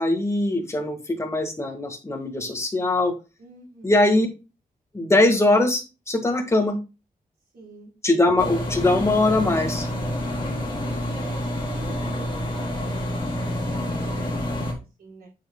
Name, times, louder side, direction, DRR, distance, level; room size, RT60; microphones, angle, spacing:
voice 1, 0.0-3.1 3.8-4.3 4.9-6.8 8.0-9.9, left 2 dB, 15° left, 4 dB, 1.5 m, -21 dB
voice 2, 3.4-4.1 7.5-7.9 10.4-10.8 11.1-14.6 15.0-15.3, right 2 dB, 90° right, -4 dB, 4.8 m, -46 dB
sound 1, 8.4-14.7, left 1 dB, 35° left, 3.0 m, -28 dB
8.9 x 7.4 x 2.2 m, 0.29 s
wide cardioid pair, 170°, 15 cm